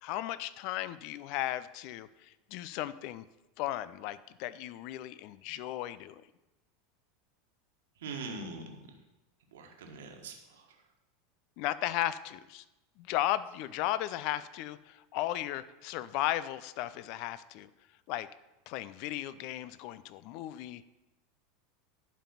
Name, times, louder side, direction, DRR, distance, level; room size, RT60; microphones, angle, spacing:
voice 1, 0.0-3.3 3.6-6.2 11.6-12.6 13.0-17.7 18.1-18.3 18.7-20.8, left 14 dB, 55° left, 16 dB, 0.5 m, -35 dB
voice 2, 8.0-8.7 9.5-10.3, right 3 dB, 70° right, 3 dB, 1.4 m, -41 dB
11.0 x 5.3 x 5.6 m, 0.98 s
figure-of-eight pair, 80°, 0 cm